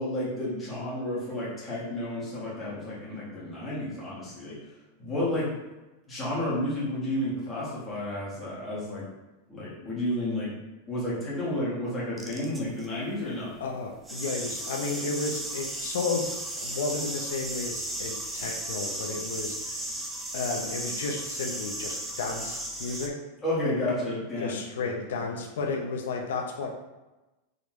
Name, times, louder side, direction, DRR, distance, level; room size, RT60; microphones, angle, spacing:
voice 1, 0.0-4.6 5.0-5.5 6.1-9.0 9.5-10.5 10.9-13.5 23.4-24.9, left 1 dB, 10° left, -9 dB, 1.4 m, -31 dB
sound 1, 12.2-12.9 14.0-23.1, right 1 dB, 5° right, 0.4 m, -35 dB
voice 2, 13.6-19.9 20.3-23.2 24.4-26.7, left 4 dB, 85° left, 1 dB, 0.6 m, -33 dB
3.8 x 3.2 x 3.0 m, 1.1 s
supercardioid pair, 170°, 0 cm